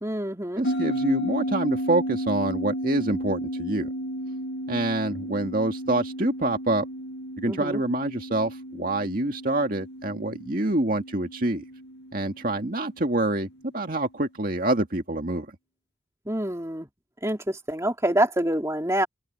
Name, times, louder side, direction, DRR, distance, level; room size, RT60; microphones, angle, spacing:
voice 1, 0.0-0.6 7.5-7.8 16.3-16.9 17.2-19.1, right 1 dB, 15° right, 2.9 m, -26 dB
sound 1, 0.6-13.4, equal, 60° left, 1.4 m, -33 dB
voice 2, 0.6-3.9 4.7-6.8 7.4-11.6 12.1-13.5 13.7-15.5, right 2 dB, 45° right, 2.0 m, -26 dB
head